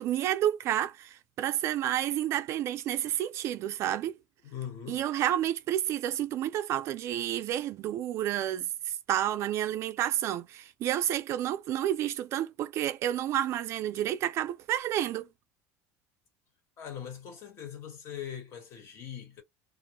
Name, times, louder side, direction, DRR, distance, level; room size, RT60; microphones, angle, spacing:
voice 1, 0.0-4.1 4.9-15.3, right 12 dB, 40° right, 0.3 m, -30 dB
voice 2, 4.4-5.0 16.8-19.4, left 9 dB, 40° left, 1.3 m, -41 dB
2.4 x 2.2 x 2.9 m
cardioid pair, 155°, 7 cm